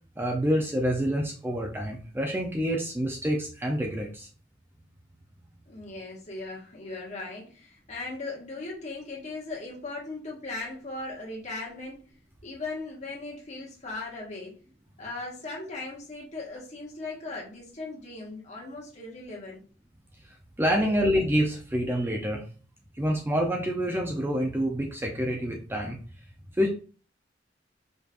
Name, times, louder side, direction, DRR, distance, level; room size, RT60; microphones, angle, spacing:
voice 1, 0.2-4.3 20.6-22.4 23.0-26.0 26.6-26.7, equal, 15° right, 1 dB, 0.6 m, -27 dB
voice 2, 5.7-12.1 12.4-14.6 15.0-19.6 20.7-21.1, left 2 dB, 40° left, -3 dB, 1.5 m, -38 dB
5.2 x 3.1 x 2.5 m, 0.39 s
head